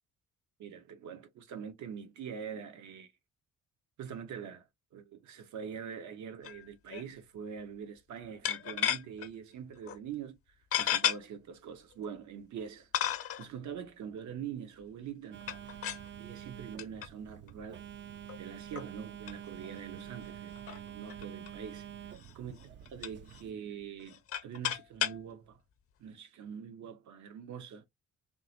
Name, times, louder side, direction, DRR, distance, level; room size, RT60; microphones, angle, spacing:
voice 1, 0.6-3.1 4.0-10.4 10.8-12.9 13.4-15.6 16.2-17.9 18.4-22.6 22.9-25.6 26.0-27.9, right 7 dB, 70° right, 0.9 m, -44 dB
sound 1, 6.4-6.6 6.9-7.0 8.4-9.3 9.8-10.0 10.7-11.2 12.0-12.1 12.9-13.5 15.4-16.1 16.8-17.1 17.5-17.6 18.3-18.4 18.7-18.9 19.3-19.4 19.6-19.7 20.0-20.1 20.6-21.5 22.1-22.3 22.6-23.4 24.0-25.2, left 10 dB, 50° left, 0.7 m, -33 dB
Telephone, 15.3-23.5, right 10 dB, 40° right, 0.4 m, -47 dB
3.7 x 2.0 x 2.8 m
cardioid pair, 90°, 30 cm